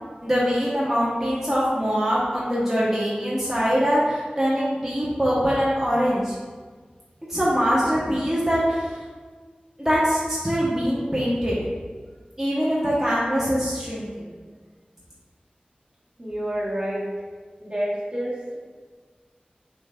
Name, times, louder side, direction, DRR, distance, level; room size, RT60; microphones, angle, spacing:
voice 1, 0.2-6.3 7.3-8.9 9.8-11.6 12.4-14.3, equal, 10° right, -8 dB, 1.0 m, -23 dB
voice 2, 16.2-17.0 17.6-18.6, equal, 35° right, -6 dB, 1.4 m, -28 dB
6.1 x 3.5 x 2.4 m, 1.5 s
wide cardioid pair, 50°, 3 cm